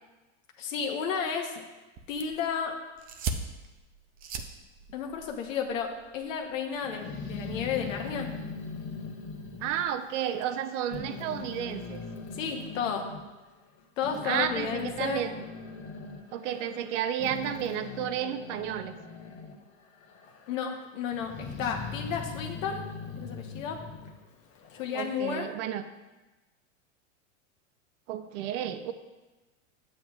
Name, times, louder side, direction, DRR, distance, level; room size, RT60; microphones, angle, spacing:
voice 1, 0.6-1.6 2.1-2.8 4.9-8.3 12.3-13.1 14.0-15.2 20.5-22.8 23.2-23.8 24.8-25.5, left 7 dB, 80° left, 2 dB, 1.0 m, -32 dB
sound 1, 2.0-7.0, right 5 dB, 25° right, 0.4 m, -40 dB
Growling, 6.8-10.6 10.9-13.2 13.8-19.6 20.0-20.7 21.1-24.9, left 5 dB, 40° left, 1.0 m, -41 dB
voice 2, 9.6-12.0 14.2-15.4 16.3-19.0 24.9-25.8 28.1-28.9, right 10 dB, 65° right, 11 dB, 0.7 m, -32 dB
9.2 x 7.7 x 2.4 m, 1.2 s
supercardioid pair, 135°, 39 cm